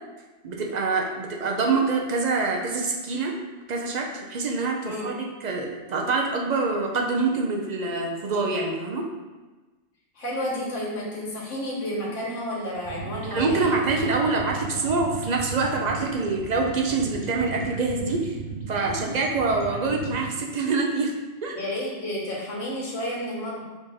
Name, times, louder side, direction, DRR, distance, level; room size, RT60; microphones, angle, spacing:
voice 1, 0.4-3.3 3.7-9.1 13.3-18.4 18.7-21.1 21.4-21.5, right 3 dB, 60° right, 0 dB, 0.4 m, -25 dB
voice 2, 10.1-13.7 21.5-23.6, left 1 dB, 75° left, -5 dB, 1.5 m, -31 dB
sound 1, 12.7-20.4, right 4 dB, 30° right, 0.8 m, -35 dB
4.9 x 2.6 x 3.9 m, 1.2 s
omnidirectional pair, 1.3 m